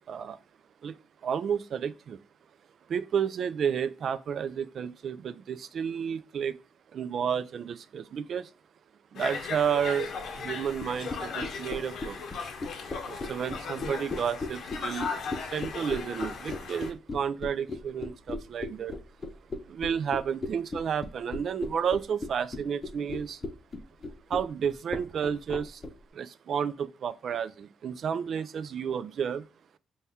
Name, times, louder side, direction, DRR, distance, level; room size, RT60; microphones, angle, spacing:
voice 1, 1.2-2.2 2.9-6.5 6.9-8.5 9.1-10.1 10.4-12.2 13.0-15.1 15.5-18.9 19.7-23.4 24.3-25.8 26.2-29.4, right 7 dB, 60° right, 0.3 m, -31 dB
Conversation, 9.1-16.9, left 5 dB, 65° left, 0.8 m, -37 dB
sound 1, 10.8-25.9, left 3 dB, 35° left, 0.5 m, -36 dB
4.1 x 2.3 x 3.3 m
cardioid pair, 90°, 0 cm